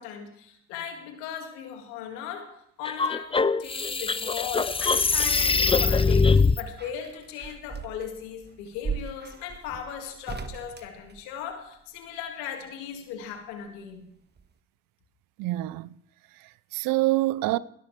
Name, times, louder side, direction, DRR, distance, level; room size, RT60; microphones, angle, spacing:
voice 1, 0.0-14.0, left 8 dB, 85° left, 2.2 m, -37 dB
sound 1, 2.8-6.6, left 4 dB, 15° left, 0.6 m, -22 dB
sound 2, 5.8-11.8 13.2-14.1 14.4-14.5, right 6 dB, 30° right, 1.4 m, -40 dB
voice 2, 15.4-16.0 16.4-17.6, right 18 dB, 75° right, 0.7 m, -26 dB
19.5 x 17.0 x 3.3 m
hypercardioid pair, 50°, 34 cm